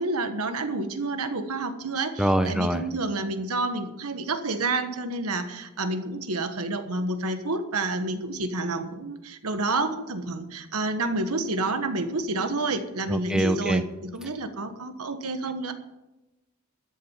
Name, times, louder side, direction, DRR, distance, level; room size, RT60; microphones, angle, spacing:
voice 1, 0.0-13.8 14.1-15.7, right 2 dB, 80° right, 8 dB, 1.5 m, -29 dB
voice 2, 2.2-2.8 13.1-13.8, right 1 dB, 5° right, 8 dB, 0.7 m, -24 dB
13.5 x 7.8 x 7.4 m, 1.0 s
head